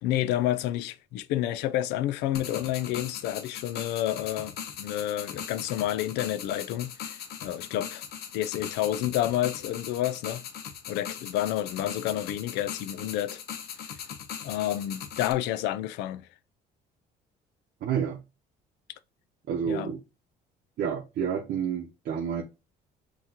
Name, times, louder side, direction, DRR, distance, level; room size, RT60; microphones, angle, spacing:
voice 1, 0.0-7.1 7.4-8.0 8.3-10.4 10.9-13.4 14.4-16.2 19.7-19.9, left 13 dB, 90° left, 0.4 m, -29 dB
sound 1, 2.3-15.3, left 8 dB, 70° left, 0.8 m, -39 dB
voice 2, 17.8-18.2 19.5-20.0 20.8-22.4, right 8 dB, 60° right, 0.8 m, -29 dB
5.7 x 3.0 x 2.8 m
cardioid pair, 110°, 17 cm